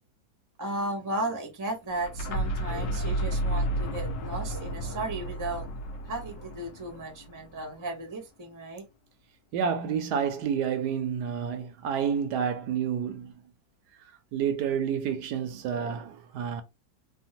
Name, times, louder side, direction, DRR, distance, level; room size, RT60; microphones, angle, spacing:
voice 1, 0.6-8.8, right 2 dB, 20° right, 0.5 m, -35 dB
sound 1, 1.9-7.7, right 1 dB, 70° left, 1.1 m, -32 dB
voice 2, 9.5-13.3 14.3-16.6, right 7 dB, 75° right, 1.1 m, -29 dB
3.4 x 2.0 x 2.8 m
omnidirectional pair, 1.8 m